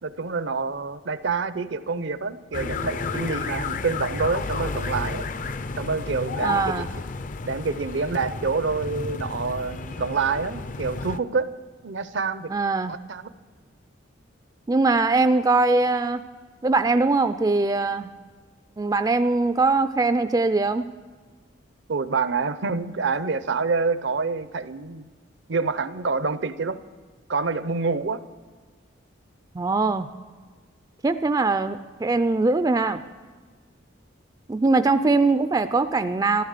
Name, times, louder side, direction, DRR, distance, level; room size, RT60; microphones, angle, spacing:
voice 1, 0.0-5.2 5.8-6.9 7.5-11.5 11.8-12.5 12.9-13.2 21.9-25.1 25.5-26.8 27.3-28.2, right 4 dB, 65° right, 14 dB, 0.6 m, -27 dB
sound 1, 2.5-11.2, left 3 dB, 40° left, 0.5 m, -32 dB
voice 2, 6.4-6.9 12.5-12.9 14.7-16.2 16.6-18.1 18.8-20.9 29.5-30.1 31.0-33.0 34.5-36.4, right 3 dB, 20° right, 11 dB, 0.3 m, -21 dB
14.5 x 13.0 x 6.6 m, 1.4 s
head